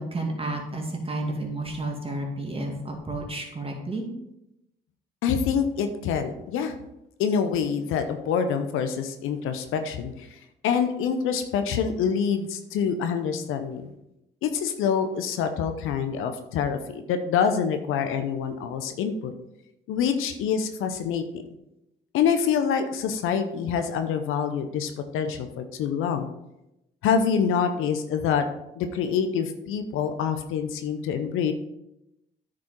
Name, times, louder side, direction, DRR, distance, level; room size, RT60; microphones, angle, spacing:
voice 1, 0.0-4.1, right 2 dB, 25° right, 0 dB, 2.5 m, -31 dB
voice 2, 5.2-6.7 7.2-10.3 10.6-13.9 14.4-19.3 19.9-21.4 22.1-26.3 27.0-28.5 28.8-31.5, left 7 dB, 80° left, 8 dB, 0.8 m, -26 dB
9.4 x 5.1 x 4.5 m, 0.88 s
hypercardioid pair, 50°, 21 cm